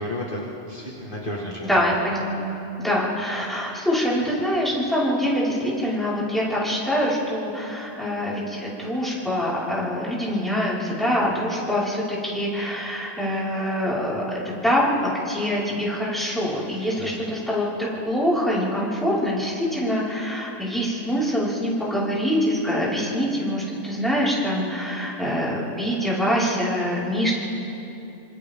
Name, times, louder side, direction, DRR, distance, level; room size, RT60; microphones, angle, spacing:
voice 1, 0.0-1.6 17.0-17.1, left 1 dB, 45° left, -5 dB, 2.3 m, -32 dB
voice 2, 1.6-2.5 2.8-27.3, equal, ahead, -8 dB, 5.5 m, -24 dB
27.5 x 26.5 x 3.8 m, 2.9 s
omnidirectional pair, 1.3 m